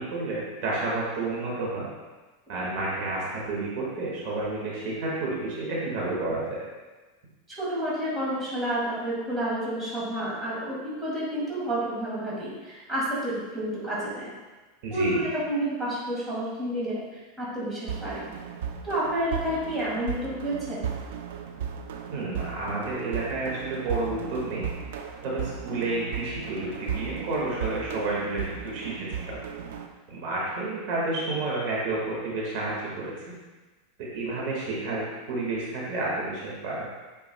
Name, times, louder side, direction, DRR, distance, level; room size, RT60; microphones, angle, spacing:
voice 1, 0.0-1.9 2.5-6.6 14.8-15.2 22.1-24.6 25.2-29.4 30.1-33.1 34.0-36.9, right 2 dB, 55° right, -5 dB, 1.8 m, -30 dB
voice 2, 7.5-14.3 14.9-18.3 18.8-20.8, right 1 dB, 10° right, -8 dB, 2.0 m, -30 dB
sound 1, 17.9-29.9, right 7 dB, 80° right, 0.6 m, -36 dB
8.9 x 4.6 x 2.3 m, 1.2 s
supercardioid pair, 155°, 0 cm